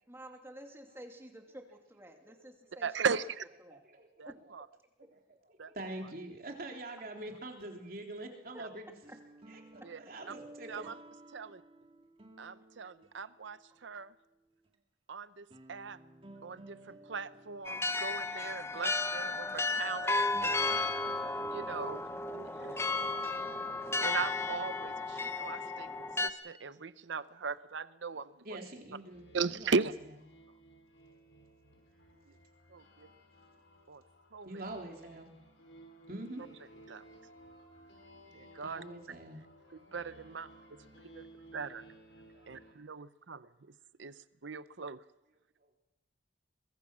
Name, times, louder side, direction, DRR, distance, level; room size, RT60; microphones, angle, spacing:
voice 1, 0.1-2.9 3.6-3.8 4.2-4.7 5.0-5.2 7.0-7.1 8.5-8.6, right 1 dB, 15° right, 2.6 m, -51 dB
voice 2, 2.8-3.4 4.2-4.7 5.6-5.7 8.6-8.7 9.8-10.0 10.7-10.9 11.3-11.5 12.4-14.1 15.1-16.0 16.4-20.7 21.5-22.0 22.3-22.8 24.0-28.6 29.3-29.9 32.7-33.1 33.9-34.0 34.3-34.6 36.9-37.0 38.3-38.8 39.7-40.5 41.1-41.3 41.5-41.8 42.5-43.5 44.0-45.0, right 5 dB, 75° right, 0.7 m, -38 dB
voice 3, 5.0-8.9 9.5-10.9 28.4-29.7 34.4-35.3 36.1-36.4 38.6-39.4 42.3-42.4, right 1 dB, 50° right, 3.6 m, -45 dB
sound 1, 8.8-14.0 14.6-14.7 15.5-22.6, right 2 dB, 30° right, 2.2 m, -56 dB
sound 2, 17.7-26.3, left 3 dB, 15° left, 0.9 m, -33 dB
sound 3, 29.1-42.7, right 1 dB, 80° left, 6.0 m, -58 dB
23.0 x 22.5 x 6.2 m
head